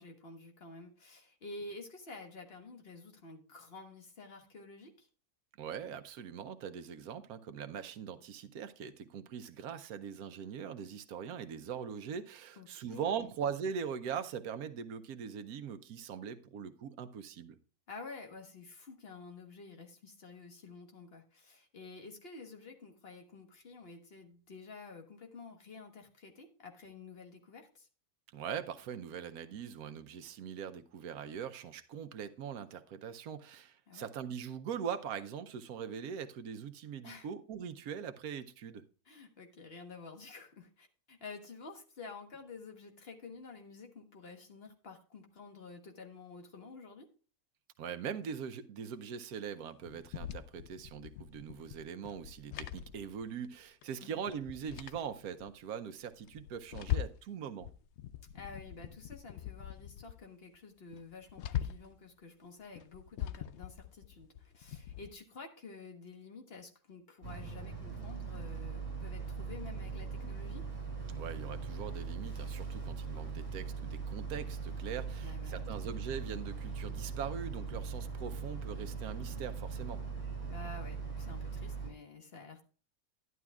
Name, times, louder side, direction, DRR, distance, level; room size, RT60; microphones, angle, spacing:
voice 1, 0.0-5.1 12.6-13.3 17.9-27.9 33.9-34.1 37.0-37.3 39.0-47.1 54.0-54.3 58.3-70.6 75.2-76.0 80.5-82.6, left 3 dB, 45° left, 1.5 m, -50 dB
voice 2, 5.6-17.6 28.3-38.8 47.8-57.7 71.2-80.0, right 7 dB, 85° right, 1.2 m, -41 dB
sound 1, 49.9-53.6 53.8-53.9 54.3-55.5 56.0-57.3 57.6-60.2 60.5-60.6 60.9-62.0 62.6-65.1, left 12 dB, 65° left, 0.7 m, -42 dB
Boat Water vehicle, 67.2-81.9, right 5 dB, 25° left, 6.4 m, -40 dB
11.0 x 11.0 x 2.4 m
omnidirectional pair, 1.5 m